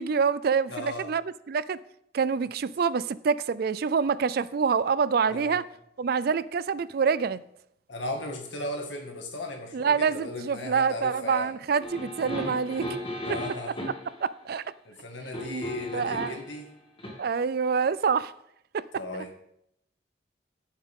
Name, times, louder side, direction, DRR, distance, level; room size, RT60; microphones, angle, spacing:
voice 1, 0.0-1.8 2.1-5.6 6.0-7.4 9.7-12.9 14.2-14.6 15.5-15.6 15.9-16.4 17.2-18.3 18.7-18.8 19.1-19.2, right 6 dB, 55° right, 0.4 m, -26 dB
voice 2, 0.7-1.1 5.3-5.6 7.9-11.5 13.2-13.7 14.9-16.7 19.0-19.3, left 2 dB, 90° left, 2.0 m, -36 dB
sound 1, 11.8-14.1 15.3-16.5 17.0-17.1, equal, 30° left, 2.3 m, -35 dB
14.5 x 7.3 x 3.7 m
head